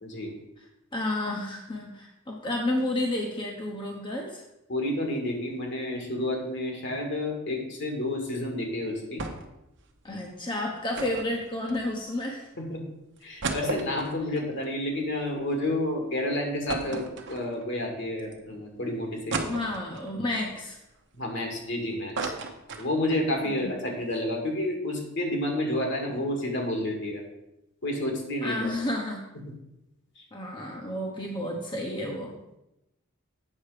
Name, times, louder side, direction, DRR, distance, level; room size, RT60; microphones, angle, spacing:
voice 1, 0.0-0.3 4.7-9.2 12.6-12.8 13.2-19.4 21.1-22.3 22.7-27.2 27.8-28.9 30.2-30.3, left 1 dB, 60° left, 2 dB, 2.0 m, -30 dB
voice 2, 0.9-4.4 10.0-12.5 19.5-20.8 23.4-23.8 28.4-29.2 30.3-32.4, left 1 dB, 25° left, 0 dB, 1.0 m, -31 dB
sound 1, 9.2-9.6 9.9-10.0 10.9-12.2 12.7-12.8 13.2-15.6 16.0-16.1 16.7-17.8 18.3-18.4 19.3-20.1 20.7-21.7 21.9-23.3 23.6-23.7 24.0-24.2, right 3 dB, 60° right, 1.0 m, -35 dB
8.6 x 6.3 x 4.9 m, 0.89 s
head